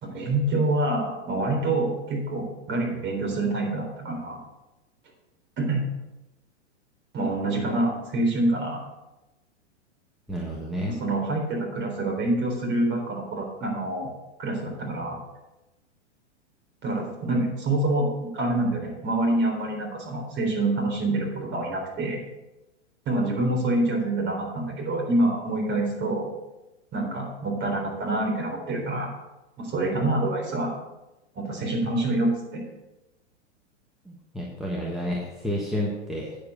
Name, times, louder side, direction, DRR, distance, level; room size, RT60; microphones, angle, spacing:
voice 1, 0.0-4.4 5.6-5.9 7.1-8.8 10.9-14.1 14.4-15.2 16.8-22.2 23.1-26.3 26.9-29.1 29.6-30.7 31.3-32.6, right 2 dB, 30° right, -1 dB, 3.9 m, -26 dB
voice 2, 10.3-10.9 34.0-36.4, equal, ahead, -4 dB, 1.4 m, -30 dB
9.4 x 7.7 x 5.2 m, 1.0 s
hypercardioid pair, 130°, 36 cm